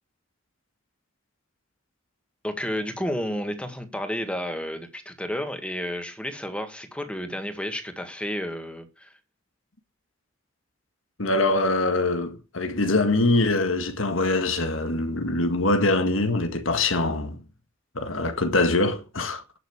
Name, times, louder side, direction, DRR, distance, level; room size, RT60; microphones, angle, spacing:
voice 1, 2.4-9.1, equal, 5° left, 1.7 m, -31 dB
voice 2, 11.2-17.4 18.0-19.4, left 2 dB, 90° left, 1.8 m, -23 dB
11.0 x 6.6 x 8.6 m
head